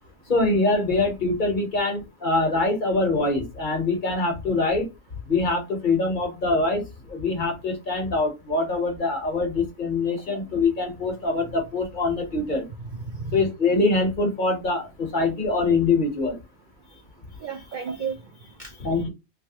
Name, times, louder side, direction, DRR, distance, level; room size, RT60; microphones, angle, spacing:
voice 1, 0.3-4.9 5.3-12.6 13.3-16.4 18.8-19.1, left 3 dB, 40° left, 1.0 m, -24 dB
voice 2, 12.8-13.4 17.4-18.2 18.6-19.1, right 5 dB, 70° right, 0.4 m, -34 dB
3.1 x 2.6 x 2.8 m
omnidirectional pair, 1.3 m